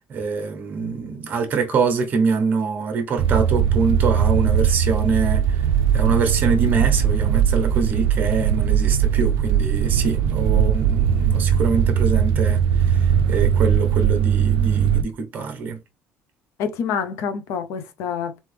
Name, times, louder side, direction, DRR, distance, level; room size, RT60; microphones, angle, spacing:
voice 1, 0.1-5.7 5.9-15.8, right 5 dB, 35° right, 1.2 m, -24 dB
sound 1, 3.2-15.0, right 8 dB, 85° right, 0.4 m, -19 dB
voice 2, 16.6-18.4, left 7 dB, 70° left, 0.7 m, -27 dB
3.9 x 3.4 x 3.3 m
cardioid pair, 155°, 5 cm